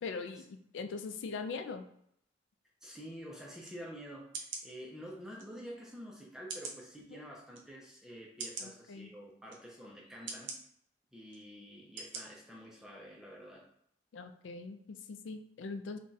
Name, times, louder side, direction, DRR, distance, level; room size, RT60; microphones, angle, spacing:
voice 1, 0.0-1.8 7.1-7.2 8.6-9.1 14.1-16.0, left 4 dB, 80° left, 8 dB, 0.3 m, -41 dB
voice 2, 2.8-10.5 11.1-13.7, equal, 5° right, -3 dB, 0.4 m, -48 dB
sound 1, 3.6-3.8 4.3-4.7 5.4-5.5 6.5-6.8 7.5-7.6 8.4-8.7 9.5-9.6 10.3-10.6 11.3-11.4 12.0-12.2 12.6-12.7, right 4 dB, 80° right, 0.6 m, -41 dB
2.6 x 2.2 x 3.8 m, 0.72 s
head